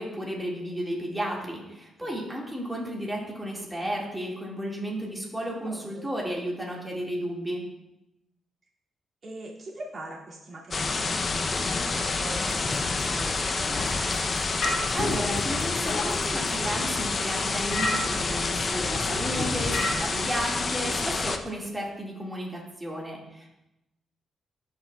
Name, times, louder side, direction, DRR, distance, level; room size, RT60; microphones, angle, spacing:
voice 1, 0.0-7.6 14.9-23.6, equal, 10° right, -3 dB, 1.9 m, -33 dB
voice 2, 5.4-6.0 9.2-14.0 20.8-21.0, right 1 dB, 45° right, -5 dB, 2.3 m, -42 dB
sound 1, 10.7-21.4, left 3 dB, 35° left, 0.6 m, -28 dB
sound 2, 12.4-19.9, left 2 dB, 65° left, 2.0 m, -33 dB
13.0 x 5.7 x 2.3 m, 0.90 s
cardioid pair, 100°, 0 cm